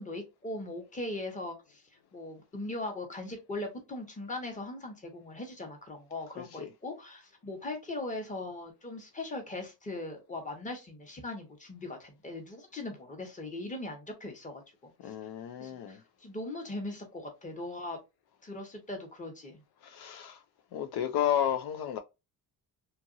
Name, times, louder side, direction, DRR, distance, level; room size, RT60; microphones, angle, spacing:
voice 1, 0.0-1.8 2.1-15.1 15.6-18.0 18.4-19.6, left 2 dB, 20° left, 1.0 m, -40 dB
voice 2, 6.4-6.7 15.0-16.0 19.8-20.4 20.7-22.0, left 10 dB, 70° left, 0.5 m, -32 dB
2.9 x 2.5 x 2.6 m
cardioid pair, 120°, 39 cm